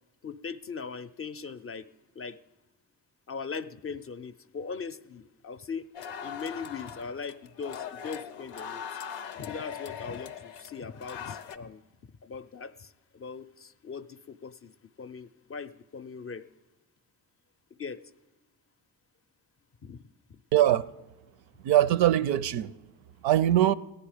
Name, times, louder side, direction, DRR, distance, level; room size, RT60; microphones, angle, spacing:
voice 1, 0.2-1.9 2.2-2.4 3.3-5.9 6.2-8.8 9.4-11.8 12.2-16.4 17.7-18.0 19.8-20.4 23.6-23.7, left 5 dB, 30° left, 0.5 m, -40 dB
sound 1, 5.9-11.6, left 8 dB, 90° left, 0.6 m, -40 dB
voice 2, 20.5-20.9 21.6-22.7 23.2-23.7, right 12 dB, 70° right, 0.5 m, -22 dB
15.0 x 9.8 x 5.0 m
hypercardioid pair, 45°, 47 cm